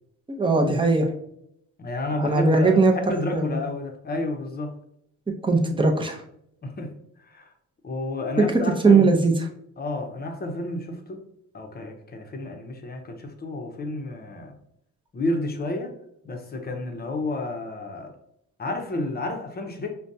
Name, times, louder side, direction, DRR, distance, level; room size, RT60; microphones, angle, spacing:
voice 1, 0.3-1.1 2.2-2.9 3.3-3.6 5.4-6.2 8.4-8.5 8.8-9.3, right 3 dB, 15° right, 1 dB, 0.6 m, -19 dB
voice 2, 1.8-4.7 6.6-6.9 7.3-7.5 7.8-9.1 9.8-11.3 11.5-14.5 15.1-15.9 16.2-18.1 18.6-19.9, left 2 dB, 30° left, 4 dB, 0.7 m, -31 dB
5.1 x 2.2 x 2.6 m, 0.76 s
cardioid pair, 90°, 30 cm